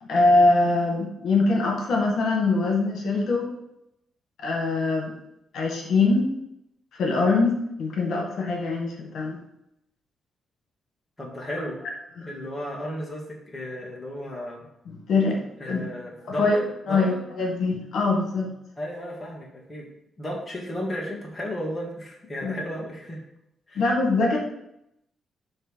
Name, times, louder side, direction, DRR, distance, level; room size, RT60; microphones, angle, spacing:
voice 1, 0.0-3.5 4.4-5.1 5.5-6.3 6.9-9.4 12.2-12.3 14.9-15.8 16.3-16.6 16.9-18.5 22.4-22.5 23.8-24.4, left 3 dB, 60° left, 1 dB, 1.8 m, -23 dB
voice 2, 11.2-11.8 12.2-14.6 15.6-17.2 18.8-19.9 20.2-23.2 23.7-23.9, equal, 10° left, -3 dB, 1.5 m, -34 dB
9.0 x 3.3 x 6.3 m, 0.80 s
cardioid pair, 165°, 0 cm